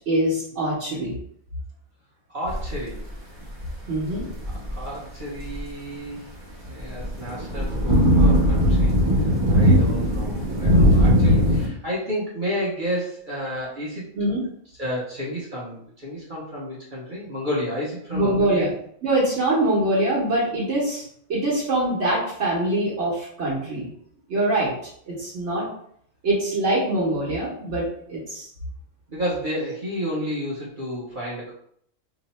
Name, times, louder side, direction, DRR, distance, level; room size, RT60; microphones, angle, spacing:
voice 1, 0.1-1.1 3.9-4.3 14.1-14.5 18.1-18.7 19.0-23.9 24.3-24.7 25.1-25.7 26.2-28.5, right 1 dB, 65° right, -6 dB, 1.2 m, -23 dB
voice 2, 2.3-3.0 4.7-6.3 6.6-9.0 9.5-14.1 14.8-18.7 29.1-31.5, equal, 45° right, -6 dB, 0.8 m, -31 dB
sound 1, 2.5-2.7 3.7-3.8 4.3-4.7 5.4-5.6 7.0-11.7, equal, 25° right, 1.0 m, -18 dB
2.9 x 2.1 x 4.0 m, 0.66 s
omnidirectional pair, 1.3 m